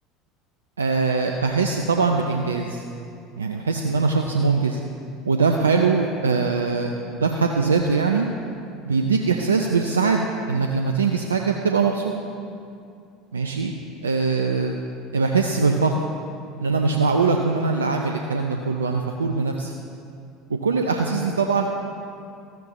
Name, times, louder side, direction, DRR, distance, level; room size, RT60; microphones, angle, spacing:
voice 1, 0.8-2.8 3.4-4.8 5.3-8.3 8.8-12.1 13.3-13.7 14.0-14.8 15.1-16.0 16.6-19.7 20.6-21.7, right 4 dB, 90° right, 3 dB, 0.4 m, -22 dB
13.5 x 10.5 x 3.0 m, 2.5 s
hypercardioid pair, 70°, 0 cm